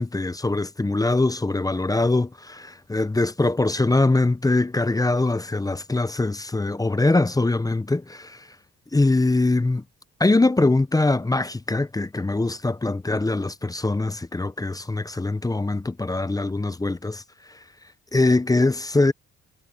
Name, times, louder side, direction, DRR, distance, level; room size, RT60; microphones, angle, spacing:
voice 1, 0.0-8.5 8.9-9.8 10.2-17.2 18.1-19.1, left 2 dB, 10° left, 0.8 m, -22 dB
cardioid pair, 90°, 30 cm